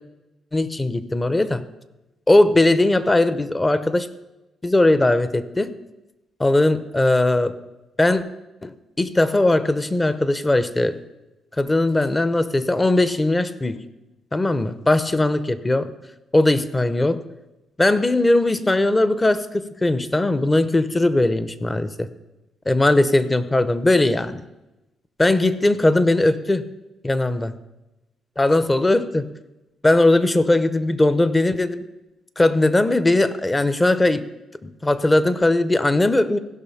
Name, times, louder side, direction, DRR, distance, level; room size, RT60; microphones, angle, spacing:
voice 1, 0.5-1.6 2.3-4.1 4.6-5.7 6.4-7.5 8.0-8.2 8.6-11.0 11.6-13.8 14.3-15.9 16.3-17.2 17.8-22.1 22.7-24.4 25.2-26.6 27.0-27.5 28.4-29.3 29.8-31.9 32.4-34.2 34.6-36.4, left 2 dB, 20° left, 14 dB, 0.7 m, -19 dB
16.0 x 5.7 x 5.7 m, 1.0 s
cardioid pair, 90°, 0 cm